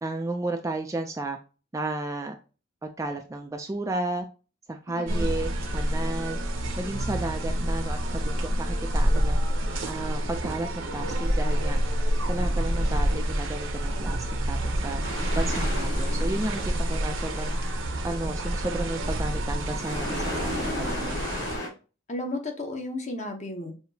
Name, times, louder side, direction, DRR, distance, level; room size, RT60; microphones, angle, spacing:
voice 1, 0.0-1.4 1.7-2.4 2.8-4.2 4.7-6.4 6.8-9.4 9.9-11.8 12.3-15.0 15.3-17.5 18.0-21.2, right 2 dB, 15° right, 4 dB, 0.3 m, -33 dB
voice 2, 5.0-5.3 22.1-23.7, left 2 dB, 35° left, 4 dB, 0.8 m, -33 dB
sound 1, 5.1-21.6, right 1 dB, 60° right, 0.8 m, -28 dB
sound 2, 15.0-21.7, left 1 dB, 60° left, 1.7 m, -36 dB
5.8 x 2.7 x 2.7 m, 0.33 s
head